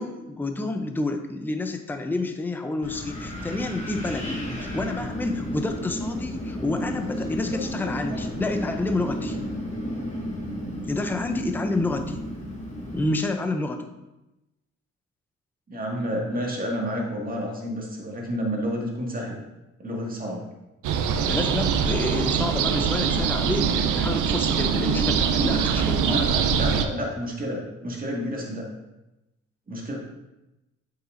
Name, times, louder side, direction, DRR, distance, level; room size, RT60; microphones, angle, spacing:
voice 1, 0.0-9.4 10.9-12.2 12.9-13.9 21.3-26.2, left 2 dB, 5° left, 6 dB, 0.5 m, -29 dB
Wind, 2.8-13.1, equal, 25° left, 1.6 m, -32 dB
voice 2, 7.5-8.3 15.7-19.4 19.8-20.5 25.5-28.7 29.7-30.0, equal, 30° right, -2 dB, 1.9 m, -31 dB
sound 1, 20.8-26.8, right 7 dB, 80° right, 0.6 m, -23 dB
7.9 x 5.7 x 2.6 m, 0.97 s
cardioid pair, 90°, 30 cm